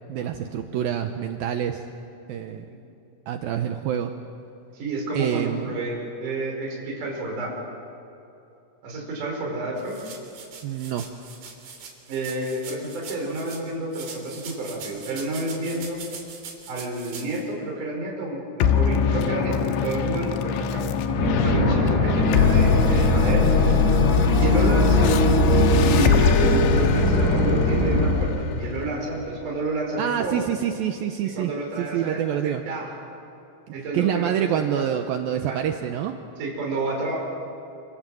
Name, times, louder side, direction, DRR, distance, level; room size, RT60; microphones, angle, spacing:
voice 1, 0.1-1.8 2.3-2.6 3.3-4.1 5.1-5.7 10.6-11.1 30.0-31.5 31.8-32.6 33.9-36.2, right 10 dB, 90° right, 6 dB, 2.1 m, -26 dB
voice 2, 4.7-7.5 8.8-10.0 12.1-16.0 16.7-23.5 24.4-25.2 25.9-30.4 31.4-32.9 33.7-34.8 35.3-35.6 36.4-37.2, right 2 dB, 45° right, -2 dB, 6.2 m, -30 dB
sound 1, 9.8-13.6 13.9-17.4, right 5 dB, 65° right, 5.5 m, -41 dB
sound 2, 18.6-29.4, left 8 dB, 90° left, 3.7 m, -23 dB
sound 3, 21.2-28.1, equal, 60° left, 8.8 m, -21 dB
27.5 x 27.0 x 7.8 m, 2.8 s
omnidirectional pair, 5.4 m